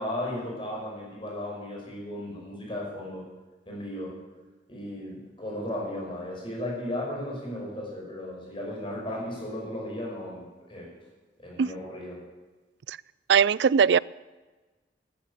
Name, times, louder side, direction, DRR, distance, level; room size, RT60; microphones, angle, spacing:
voice 1, 0.0-3.3 3.7-4.2 4.7-10.9 11.4-12.2, left 1 dB, 30° left, -2 dB, 5.8 m, -35 dB
voice 2, 13.3-14.0, right 6 dB, 75° right, 22 dB, 0.4 m, -19 dB
14.0 x 12.0 x 8.5 m, 1.3 s
head